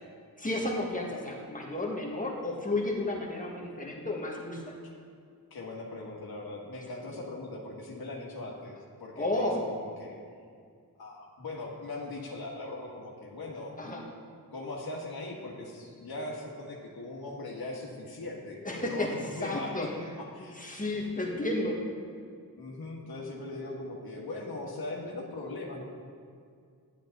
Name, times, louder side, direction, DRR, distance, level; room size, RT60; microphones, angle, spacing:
voice 1, 0.4-4.6 9.2-9.6 13.8-14.0 18.6-19.1 19.4-19.9 20.6-21.8, left 2 dB, 20° left, -2 dB, 1.6 m, -32 dB
voice 2, 5.5-10.2 11.0-13.7 14.5-20.6 20.9-21.3 22.6-25.8, left 2 dB, 80° left, -2 dB, 1.6 m, -40 dB
10.5 x 10.5 x 4.0 m, 2.2 s
wide cardioid pair, 95°, 37 cm